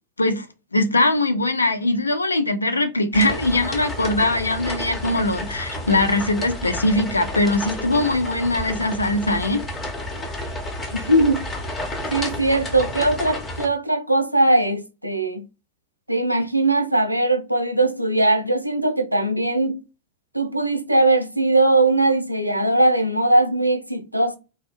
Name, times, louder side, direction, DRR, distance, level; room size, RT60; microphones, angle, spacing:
voice 1, 0.7-9.7, left 2 dB, 80° left, 0.3 m, -21 dB
sound 1, 3.1-13.7, left 1 dB, 20° left, 0.8 m, -31 dB
voice 2, 10.9-11.5 12.1-15.5 16.1-19.8 20.3-24.4, right 2 dB, 90° right, 0.4 m, -20 dB
2.3 x 2.0 x 2.9 m
figure-of-eight pair, 90°, 0 cm